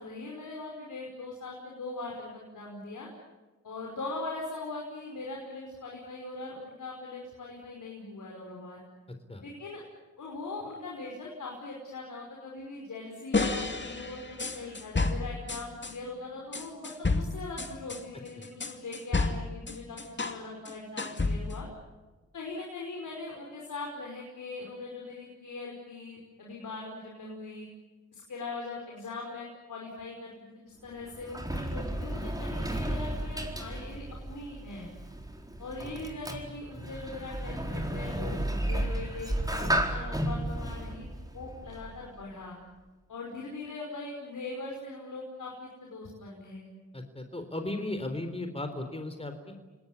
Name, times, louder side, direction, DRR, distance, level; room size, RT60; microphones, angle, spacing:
voice 1, 0.0-3.1 3.6-8.8 9.4-9.8 10.2-20.0 20.2-21.7 22.3-27.7 28.1-34.9 35.6-38.4 38.7-41.1 41.3-42.6 43.1-46.6, left 3 dB, 80° left, -1 dB, 5.5 m, -41 dB
sound 1, 13.3-16.0 16.5-20.4 20.7-21.7, left 3 dB, 35° left, 2.4 m, -31 dB
Sliding door, 30.8-42.2, right 1 dB, 10° right, 4.3 m, -33 dB
voice 2, 46.9-49.5, left 2 dB, 20° left, 7 dB, 4.0 m, -36 dB
28.0 x 20.0 x 9.9 m, 1.2 s
cardioid pair, 50°, 31 cm